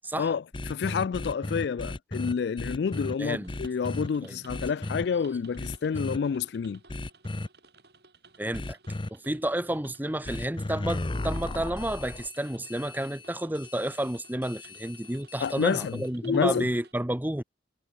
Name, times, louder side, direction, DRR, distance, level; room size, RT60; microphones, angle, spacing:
voice 1, 0.2-6.8 15.4-16.7, left 6 dB, 65° left, 0.3 m, -29 dB
sound 1, 0.5-3.1 3.5-4.1 4.5-5.0 5.6-6.2 6.9-7.5 8.5-9.1 10.2-16.1, left 2 dB, 25° left, 0.6 m, -35 dB
sound 2, 2.9-16.9, right 4 dB, 60° right, 6.7 m, -58 dB
voice 2, 3.2-3.5 4.2-4.4 8.4-8.8 9.1-17.4, right 1 dB, 10° right, 0.9 m, -31 dB
head